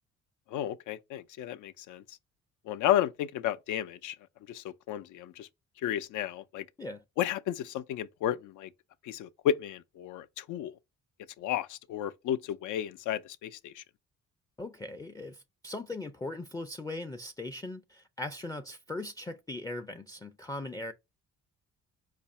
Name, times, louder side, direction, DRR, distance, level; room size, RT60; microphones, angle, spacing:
voice 1, 0.5-2.0 2.7-4.2 4.5-5.5 5.8-6.7 7.2-8.7 9.0-10.7 11.4-13.8, left 11 dB, 80° left, 0.5 m, -32 dB
voice 2, 14.6-20.9, left 2 dB, 10° left, 0.4 m, -39 dB
4.6 x 2.5 x 4.1 m
cardioid pair, 90°, 30 cm